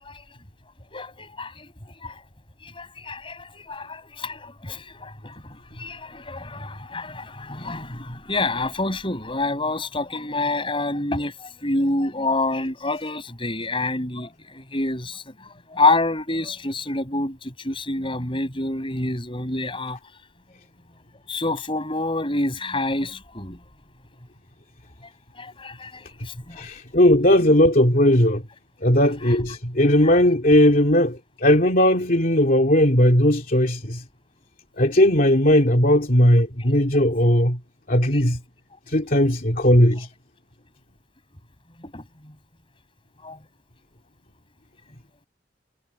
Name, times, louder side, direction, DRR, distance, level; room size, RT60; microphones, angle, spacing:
voice 1, 0.9-1.7 2.0-2.1 2.6-15.3 15.7-20.0 21.3-23.6 25.4-26.6 41.8-42.3 43.2-43.4, left 2 dB, 30° left, 6.3 m, -27 dB
voice 2, 26.6-28.4 28.8-34.0 34.8-37.6 37.9-38.4 38.9-40.1, left 1 dB, 55° left, 2.7 m, -18 dB
head